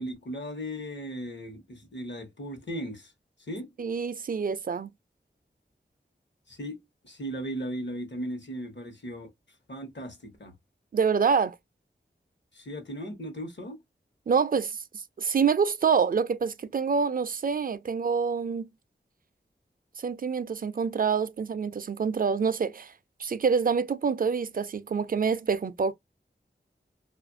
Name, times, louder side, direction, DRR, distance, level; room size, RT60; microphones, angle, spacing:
voice 1, 0.0-3.1 3.5-3.7 6.5-9.3 9.7-10.5 12.5-13.8, equal, 65° left, 1.0 m, -37 dB
voice 2, 3.8-4.9 10.9-11.5 14.3-14.8 15.2-18.7 20.0-22.9 23.2-25.9, right 6 dB, 45° right, 0.4 m, -26 dB
2.6 x 2.4 x 2.5 m
cardioid pair, 45°, 20 cm